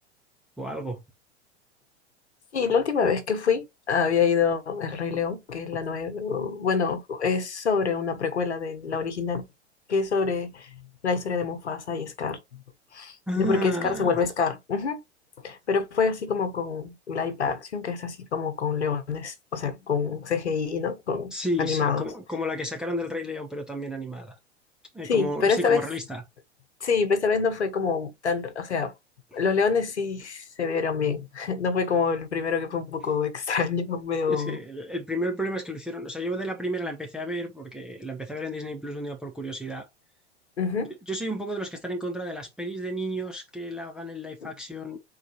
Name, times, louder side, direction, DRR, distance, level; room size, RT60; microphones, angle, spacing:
voice 1, 0.6-1.0 13.3-14.2 21.3-24.3 24.9-26.2 34.3-39.9 41.1-45.0, equal, ahead, 0.4 m, -32 dB
voice 2, 2.5-9.4 9.9-12.6 12.9-15.0 15.4-22.0 25.0-25.8 26.8-28.9 29.3-34.6 40.6-40.9 44.4-44.5, left 5 dB, 75° left, 1.1 m, -26 dB
4.1 x 3.9 x 3.0 m
figure-of-eight pair, 95°, 34 cm